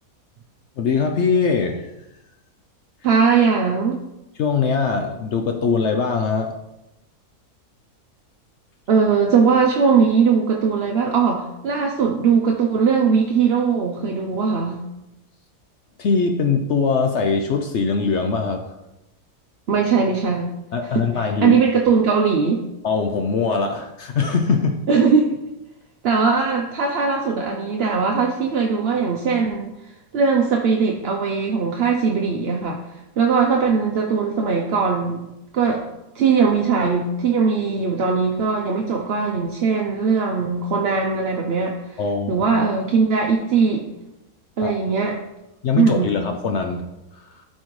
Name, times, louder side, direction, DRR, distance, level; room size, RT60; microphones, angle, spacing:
voice 1, 0.8-1.9 4.4-6.5 16.0-18.6 20.7-21.6 22.8-24.8 42.0-42.3 44.6-44.7 45.6-46.8 47.1-47.2, left 5 dB, 60° left, 4 dB, 0.7 m, -21 dB
voice 2, 3.0-4.0 8.9-14.8 19.7-20.5 20.9-22.6 24.9-25.3 26.0-29.7 30.1-32.8 33.2-35.2 35.5-35.9 36.1-42.0 42.3-43.9 44.6-45.2 45.7-46.2, right 5 dB, 55° right, 1 dB, 0.7 m, -20 dB
12.0 x 4.3 x 3.1 m, 0.93 s
omnidirectional pair, 1.6 m